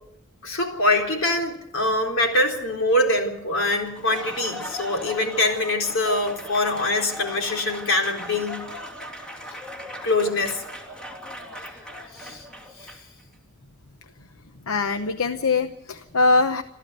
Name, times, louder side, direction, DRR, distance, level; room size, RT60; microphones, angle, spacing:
voice 1, 0.4-8.7 10.0-10.6 12.2-12.4 12.8-12.9, left 1 dB, 65° left, 2 dB, 4.0 m, -24 dB
Applause, 3.8-13.2, left 1 dB, 5° left, 3.2 m, -38 dB
voice 2, 14.7-16.6, left 3 dB, 85° left, 9 dB, 0.9 m, -22 dB
28.0 x 14.0 x 8.2 m, 0.87 s
head